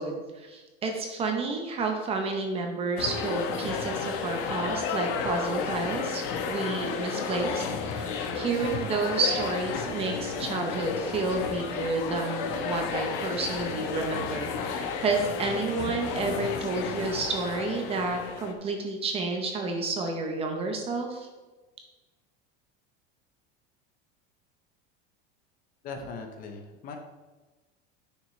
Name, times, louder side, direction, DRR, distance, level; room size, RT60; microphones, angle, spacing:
voice 1, 0.0-21.3, right 3 dB, 20° right, 3 dB, 0.7 m, -30 dB
sound 1, 3.0-18.5, left 5 dB, 60° left, 1.0 m, -32 dB
voice 2, 25.8-27.0, left 4 dB, 30° left, 4 dB, 0.7 m, -39 dB
9.7 x 6.4 x 3.1 m, 1.2 s
cardioid pair, 180°, 29 cm